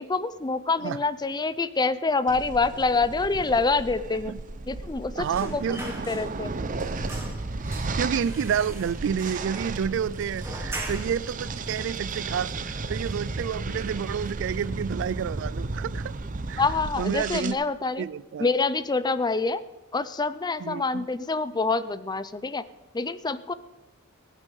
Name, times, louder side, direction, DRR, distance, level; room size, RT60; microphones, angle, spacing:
voice 1, 0.0-4.3 4.7-6.5 16.6-18.1 18.4-19.6 19.9-22.6 22.9-23.5, left 3 dB, 20° left, 0.5 m, -26 dB
sound 1, 2.3-17.5, right 3 dB, 40° right, 0.7 m, -34 dB
voice 2, 5.2-5.8 8.0-16.1 16.5-16.6 17.0-17.6 18.0-18.5 20.6-21.1, right 8 dB, 60° right, 0.3 m, -29 dB
sound 2, 5.3-6.5 6.8-11.3 11.7-11.8 12.1-12.9 13.2-13.4 13.7-14.4 14.7-14.9, right 2 dB, 10° right, 2.7 m, -41 dB
18.5 x 8.4 x 5.4 m
head